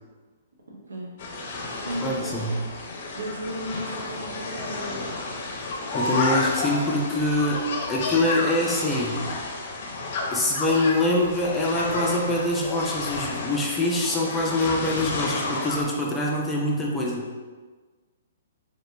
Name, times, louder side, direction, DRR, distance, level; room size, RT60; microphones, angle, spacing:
voice 1, 0.7-1.1 1.8-2.5 3.1-5.0, right 1 dB, 85° right, -2 dB, 0.9 m, -35 dB
sound 1, 1.2-15.8, left 3 dB, 50° left, 0.6 m, -31 dB
voice 2, 2.0-2.6 5.9-7.6 7.9-9.2 10.3-17.3, left 1 dB, 10° left, -3 dB, 0.6 m, -24 dB
3.0 x 2.8 x 3.3 m, 1.4 s
hypercardioid pair, 130°, 0 cm